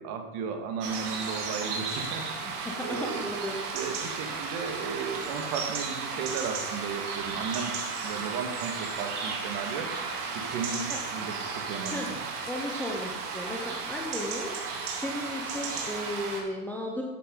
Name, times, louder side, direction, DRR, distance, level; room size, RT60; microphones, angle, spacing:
voice 1, 0.0-2.3 2.6-3.3 3.7-7.7 8.0-9.9 10.3-12.2, right 6 dB, 45° right, 4 dB, 1.9 m, -35 dB
sound 1, 0.8-16.4, right 4 dB, 85° right, 3.2 m, -34 dB
voice 2, 2.6-3.6 10.9-11.0 11.9-12.1 12.4-14.5 15.0-17.0, left 1 dB, 5° left, -2 dB, 0.8 m, -35 dB
13.0 x 8.3 x 3.9 m, 1.3 s
supercardioid pair, 145°, 45 cm